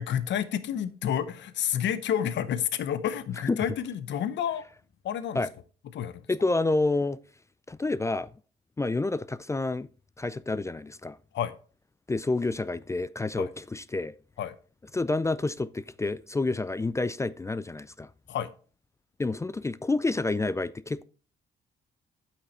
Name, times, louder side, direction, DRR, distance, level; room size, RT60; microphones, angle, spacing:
voice 1, 0.0-4.6 5.0-5.4 5.9-6.2 11.3-11.5 13.4-13.5 14.4-14.5 18.3-18.5, left 9 dB, 65° left, 0.7 m, -29 dB
voice 2, 6.3-7.2 7.7-8.3 8.8-9.9 10.2-11.2 12.1-14.1 14.9-18.1 19.2-21.0, left 2 dB, 15° left, 0.3 m, -28 dB
8.3 x 6.0 x 4.2 m
cardioid pair, 90°, 20 cm